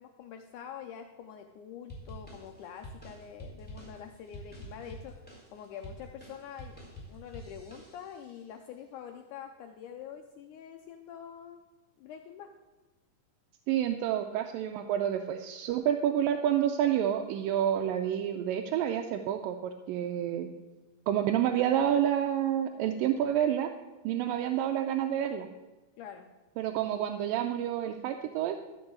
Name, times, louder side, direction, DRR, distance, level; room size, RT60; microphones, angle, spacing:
voice 1, 0.0-5.2 5.5-6.8 7.1-11.6 12.0-12.5 26.0-26.3, left 8 dB, 75° left, 5 dB, 2.0 m, -45 dB
sound 1, 1.9-8.3, equal, 5° left, 3.6 m, -47 dB
voice 2, 13.7-20.5 21.1-23.7 24.0-25.5 26.6-28.6, right 10 dB, 85° right, 5 dB, 2.3 m, -29 dB
13.5 x 5.4 x 7.9 m, 1.1 s
omnidirectional pair, 3.9 m